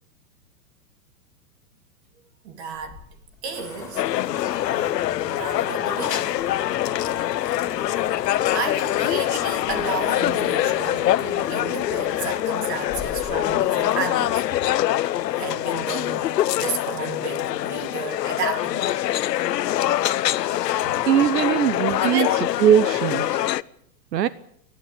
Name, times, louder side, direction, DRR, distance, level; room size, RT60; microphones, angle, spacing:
voice 1, 2.4-3.0 3.4-4.0 4.7-5.0 5.3-6.3 7.0-7.3 8.5-14.4 15.3-19.1 20.8-21.1 21.9-22.4, right 5 dB, 40° right, 3.3 m, -32 dB
sound 1, 2.7-14.6, left 4 dB, 5° left, 5.1 m, -41 dB
sound 2, 4.0-23.6, left 13 dB, 80° left, 0.9 m, -24 dB
voice 2, 21.1-22.3 22.6-23.4 24.1-24.3, right 10 dB, 85° right, 1.1 m, -20 dB
30.0 x 11.5 x 9.1 m
supercardioid pair, 175°, 48 cm